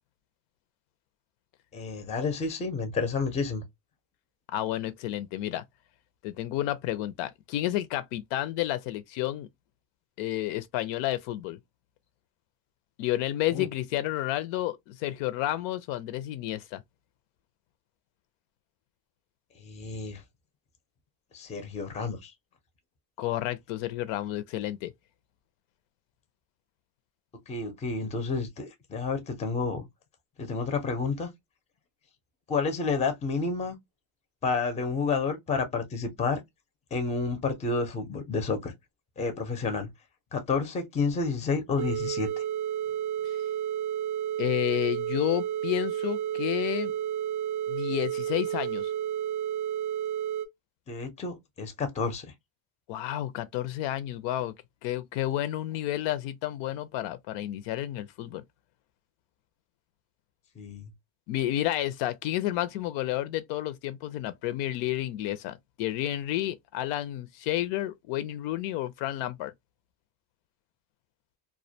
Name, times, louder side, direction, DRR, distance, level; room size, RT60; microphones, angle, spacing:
voice 1, 1.7-3.6 13.5-13.7 19.6-20.2 21.3-22.3 27.5-29.8 30.4-31.3 32.5-33.7 34.4-36.4 36.9-38.7 39.2-39.9 40.3-42.3 50.9-52.3 60.6-60.9, left 4 dB, 15° left, 0.5 m, -30 dB
voice 2, 4.5-5.6 6.2-9.5 10.2-11.6 13.0-16.8 23.2-24.9 44.4-46.9 47.7-48.9 52.9-54.5 54.8-58.4 61.3-69.5, left 14 dB, 75° left, 0.5 m, -31 dB
sound 1, 41.8-50.5, right 10 dB, 45° right, 0.5 m, -31 dB
2.3 x 2.2 x 2.6 m
cardioid pair, 145°, 44 cm